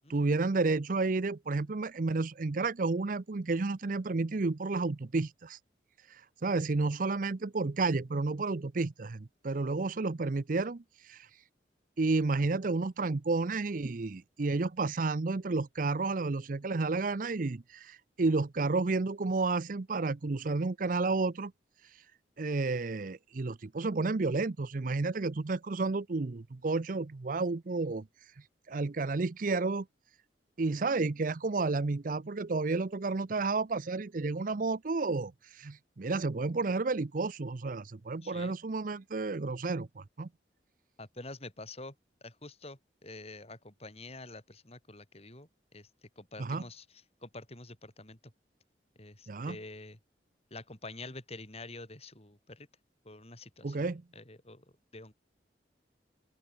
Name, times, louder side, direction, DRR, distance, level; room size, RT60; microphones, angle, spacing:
voice 1, 0.1-5.6 6.1-11.3 12.0-21.5 22.4-28.1 28.7-29.9 30.6-40.3 46.4-46.6 49.3-49.6 53.6-54.0, right 3 dB, 50° right, 0.6 m, -31 dB
voice 2, 38.2-38.5 41.0-42.0 42.2-48.3 49.0-50.0 50.5-52.7 53.0-54.7 54.9-55.1, left 2 dB, 35° left, 5.4 m, -47 dB
open air
head